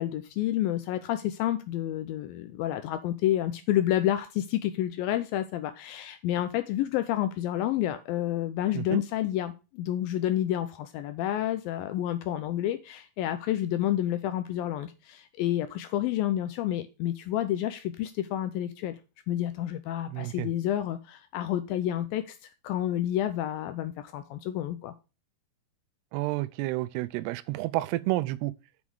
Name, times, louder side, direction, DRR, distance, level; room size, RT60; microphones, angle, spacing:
voice 1, 0.0-19.0 19.3-24.9, left 12 dB, 85° left, 2.1 m, -29 dB
voice 2, 20.1-20.5 26.1-28.5, right 18 dB, 90° right, 2.7 m, -30 dB
7.1 x 6.1 x 4.8 m
omnidirectional pair, 4.6 m